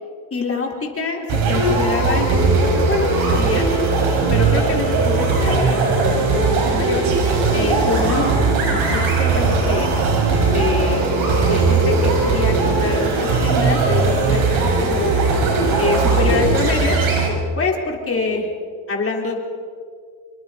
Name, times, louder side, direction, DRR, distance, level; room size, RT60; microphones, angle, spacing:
voice 1, 0.3-3.7 4.3-7.0 7.5-9.9 10.5-15.1 15.8-17.0 17.6-18.5 18.9-19.4, left 4 dB, 25° left, 0 dB, 4.0 m, -25 dB
sound 1, 1.3-17.3, right 3 dB, 75° right, 5.7 m, -18 dB
27.0 x 24.5 x 4.1 m, 2.1 s
cardioid pair, 110°, 49 cm